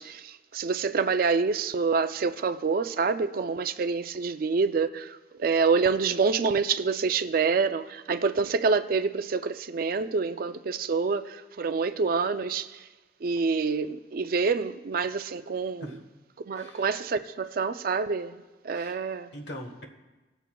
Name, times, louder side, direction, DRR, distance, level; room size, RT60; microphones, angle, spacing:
voice 1, 0.0-12.8 13.2-15.9 16.4-18.3 18.6-19.3, right 5 dB, 50° right, 0.4 m, -27 dB
voice 2, 16.5-16.9 18.7-19.0 19.3-19.9, equal, 65° left, 1.2 m, -41 dB
20.0 x 8.0 x 2.3 m
head